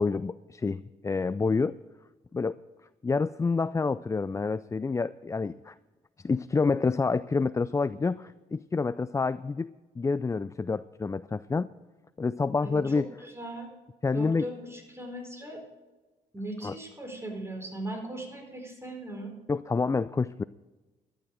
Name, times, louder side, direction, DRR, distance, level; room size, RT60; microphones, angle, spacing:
voice 1, 0.0-1.7 2.3-2.6 3.0-5.7 6.2-9.7 10.0-11.7 12.2-13.1 14.0-14.5 16.6-16.7 19.5-20.4, left 4 dB, 15° left, 16 dB, 0.4 m, -28 dB
voice 2, 12.6-13.7 14.1-15.6 16.3-19.3, right 1 dB, 15° right, 2 dB, 4.5 m, -38 dB
12.5 x 10.5 x 6.4 m, 1.2 s
hypercardioid pair, 55°, 18 cm